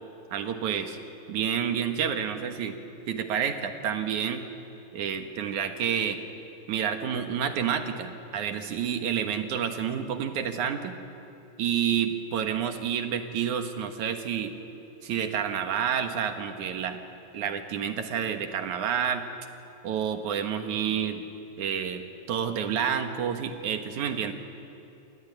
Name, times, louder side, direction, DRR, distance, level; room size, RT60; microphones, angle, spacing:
voice 1, 0.3-1.0 1.3-2.8 3.1-4.5 4.9-6.2 6.7-11.0 11.6-14.5 15.0-17.1 17.3-19.2 19.8-21.3 21.6-24.3, right 8 dB, 70° right, 6 dB, 2.8 m, -29 dB
28.0 x 21.0 x 9.3 m, 2.8 s
omnidirectional pair, 3.7 m